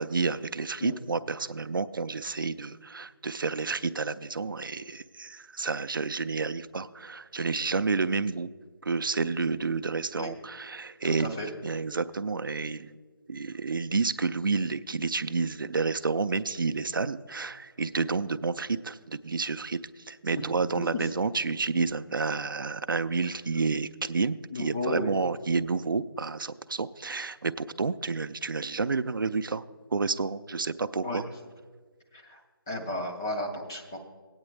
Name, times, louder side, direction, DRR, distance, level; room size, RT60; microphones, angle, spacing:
voice 1, 0.0-8.5 8.8-11.4 11.6-13.0 13.3-29.6 29.9-31.2, right 4 dB, 60° right, 12 dB, 0.4 m, -30 dB
voice 2, 11.2-11.5 20.4-20.5 24.5-25.1 31.0-31.2 32.1-32.4 32.7-34.0, left 2 dB, 10° left, 0 dB, 0.3 m, -33 dB
16.0 x 8.8 x 3.2 m, 1.5 s
figure-of-eight pair, 155°, 12 cm